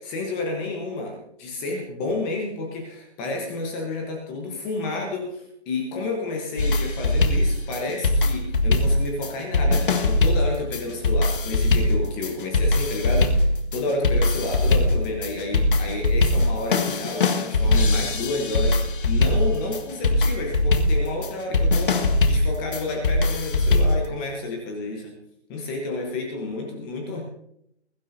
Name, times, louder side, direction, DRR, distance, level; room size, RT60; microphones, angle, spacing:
voice 1, 0.0-25.1 25.5-27.2, left 2 dB, 10° left, 1 dB, 1.0 m, -30 dB
sound 1, 6.6-24.1, left 2 dB, 50° left, 1.6 m, -21 dB
21.5 x 12.0 x 2.7 m, 0.74 s
hypercardioid pair, 160°, 34 cm